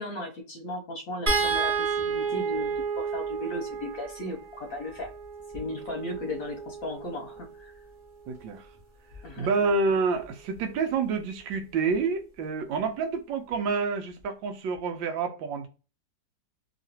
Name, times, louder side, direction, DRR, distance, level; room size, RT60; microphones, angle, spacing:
voice 1, 0.0-5.1 5.5-7.7 9.2-9.5, left 1 dB, 60° left, 1.0 m, -36 dB
sound 1, 1.3-7.6 9.1-9.3 9.6-9.8, right 5 dB, 35° right, 0.9 m, -31 dB
voice 2, 8.3-8.7 9.4-15.7, right 4 dB, 85° right, 1.4 m, -28 dB
3.1 x 2.8 x 2.7 m
omnidirectional pair, 2.0 m